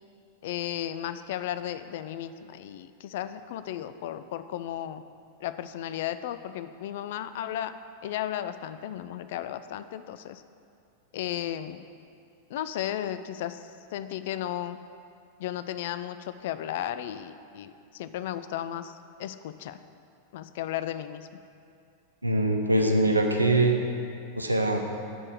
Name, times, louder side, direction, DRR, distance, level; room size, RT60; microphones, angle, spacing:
voice 1, 0.4-5.0 5.4-7.7 8.0-10.4 11.1-11.8 12.5-14.8 15.4-19.8 20.3-21.3, left 11 dB, 55° left, 11 dB, 0.3 m, -34 dB
voice 2, 22.2-23.8 24.4-24.8, right 2 dB, 85° right, 3 dB, 0.7 m, -23 dB
6.9 x 5.3 x 6.3 m, 2.5 s
figure-of-eight pair, 90°, 0 cm